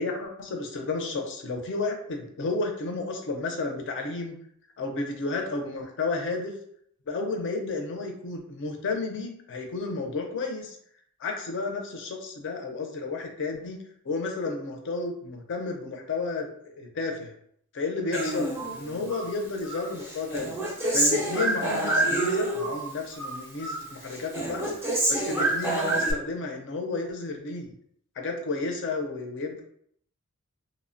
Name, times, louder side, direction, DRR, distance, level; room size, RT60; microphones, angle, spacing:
voice 1, 0.0-4.3 4.8-6.5 7.1-10.8 11.2-16.5 16.8-17.3 17.7-20.5 20.9-24.7 25.1-27.7 28.2-29.6, left 3 dB, 55° left, 3 dB, 0.5 m, -32 dB
Human voice, 18.1-19.3 19.6-22.8 23.1-23.9 24.1-26.1, right 1 dB, 10° right, 0.4 m, -27 dB
2.9 x 2.1 x 2.5 m, 0.66 s
head